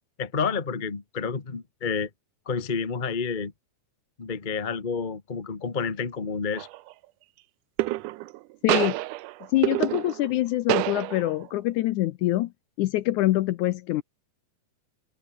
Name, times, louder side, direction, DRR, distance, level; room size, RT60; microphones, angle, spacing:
voice 1, 0.2-2.1 2.4-3.5 4.2-6.7, left 5 dB, 60° left, 0.5 m, -29 dB
sound 1, 6.5-6.9 7.8-8.4 8.7-10.4 10.7-11.5, right 18 dB, 80° right, 1.9 m, -27 dB
voice 2, 8.6-9.0 9.5-12.5 12.8-14.0, left 16 dB, 75° left, 1.8 m, -25 dB
omnidirectional pair, 4.1 m